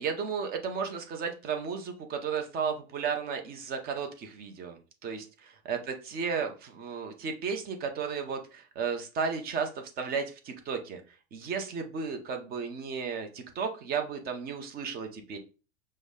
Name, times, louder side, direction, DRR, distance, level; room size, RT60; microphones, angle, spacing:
voice 1, 0.0-5.8 6.1-11.0 11.3-15.4, right 6 dB, 25° right, 5 dB, 0.8 m, -34 dB
5.2 x 2.1 x 3.7 m, 0.34 s
figure-of-eight pair, 90°, 36 cm